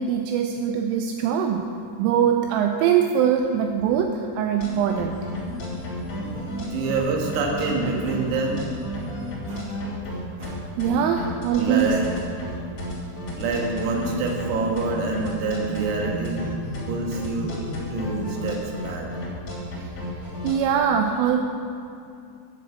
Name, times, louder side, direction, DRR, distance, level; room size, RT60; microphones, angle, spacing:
voice 1, 0.0-1.7 2.0-5.2 6.3-6.5 9.5-9.7 10.4-11.9 19.8-19.9 20.4-21.4, right 8 dB, 85° right, 4 dB, 3.1 m, -23 dB
sound 1, 4.6-20.5, left 1 dB, 35° left, 3.6 m, -32 dB
voice 2, 6.6-8.7 11.6-12.1 13.4-16.5 16.9-17.5 17.9-19.1, right 3 dB, 65° right, 0 dB, 3.2 m, -26 dB
10.5 x 7.7 x 7.9 m, 2.5 s
omnidirectional pair, 5.8 m